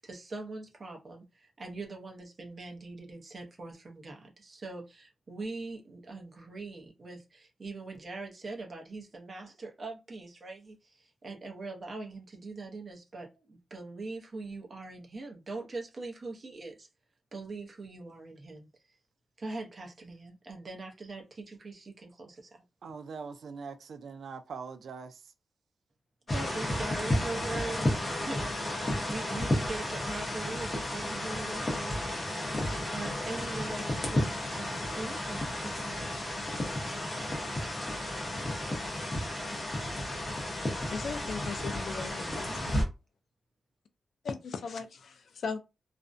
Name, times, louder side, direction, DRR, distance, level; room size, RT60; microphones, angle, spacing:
voice 1, 0.0-16.9 17.3-19.0 19.4-22.6 26.3-32.4 32.9-36.6 41.9-42.8, right 3 dB, 35° right, 0.6 m, -42 dB
voice 2, 22.8-25.2, right 5 dB, 70° right, 0.3 m, -42 dB
sound 1, 26.3-42.8, left 1 dB, 25° left, 0.7 m, -33 dB
voice 3, 40.9-42.5 44.2-45.6, left 5 dB, 65° left, 0.3 m, -37 dB
2.4 x 2.0 x 2.5 m
wide cardioid pair, 170°, 0 cm